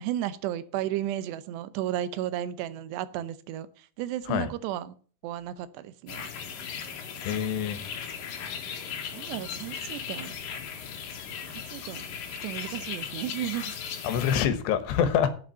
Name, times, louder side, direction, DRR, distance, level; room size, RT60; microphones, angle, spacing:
voice 1, 0.0-5.0 5.2-6.3 9.1-10.3 11.5-12.0 12.3-13.9, right 12 dB, 85° right, 3.0 m, -34 dB
sound 1, 6.1-14.4, left 7 dB, 60° left, 3.1 m, -37 dB
voice 2, 7.2-7.8 14.0-15.3, left 8 dB, 80° left, 3.3 m, -25 dB
8.8 x 7.1 x 8.9 m
omnidirectional pair, 4.8 m